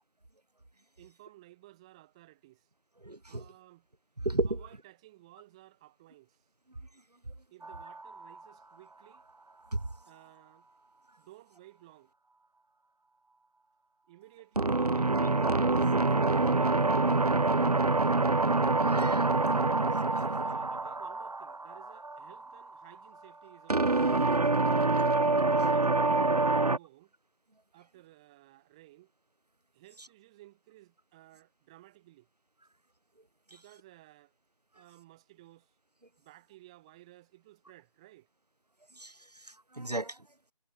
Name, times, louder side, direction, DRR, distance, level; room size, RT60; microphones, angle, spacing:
voice 1, 1.0-2.7 3.3-3.9 4.5-6.5 7.5-9.2 10.0-10.7 11.2-12.1 14.1-17.2 20.2-25.2 25.5-27.1 27.7-29.1 29.7-32.3 33.5-34.3 34.7-35.7 36.2-38.3, right 17 dB, 10° right, 3.5 m, -56 dB
voice 2, 3.0-3.4 4.2-4.6 9.7-9.9 18.5-19.4 39.0-39.1 39.4-40.2, right 2 dB, 90° right, 4.5 m, -34 dB
sound 1, 7.6-8.3 14.6-22.6 23.7-26.8, right 3 dB, 75° right, 1.6 m, -26 dB
figure-of-eight pair, 170°, 20 cm